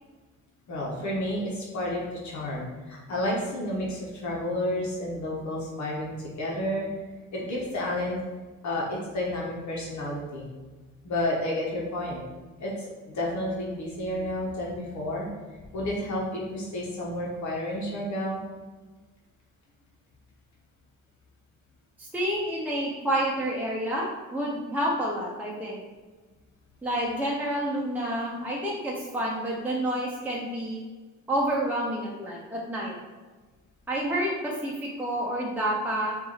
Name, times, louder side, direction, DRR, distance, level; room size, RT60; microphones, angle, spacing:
voice 1, 0.7-6.9 7.3-8.2 8.6-10.5 11.0-12.2 12.6-12.7 13.1-15.3 15.7-18.4, left 1 dB, 70° left, -4 dB, 1.3 m, -31 dB
voice 2, 22.0-25.8 26.8-30.8 31.3-33.0 33.9-36.2, right 1 dB, 5° right, -4 dB, 0.8 m, -29 dB
4.5 x 2.7 x 4.1 m, 1.3 s
cardioid pair, 90°, 30 cm